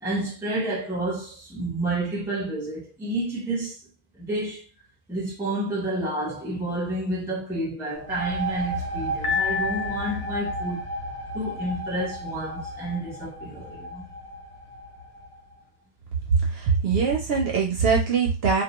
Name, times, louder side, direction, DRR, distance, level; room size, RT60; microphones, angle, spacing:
voice 1, 0.0-3.8 4.1-4.7 5.1-10.9 11.3-14.1, right 1 dB, 5° right, 0.6 m, -30 dB
sound 1, 7.9-15.4, right 1 dB, 85° left, 1.2 m, -33 dB
Piano, 9.2-10.5, left 7 dB, 65° left, 0.7 m, -29 dB
voice 2, 16.3-18.6, right 5 dB, 60° right, 0.7 m, -22 dB
2.4 x 2.2 x 2.9 m
omnidirectional pair, 1.3 m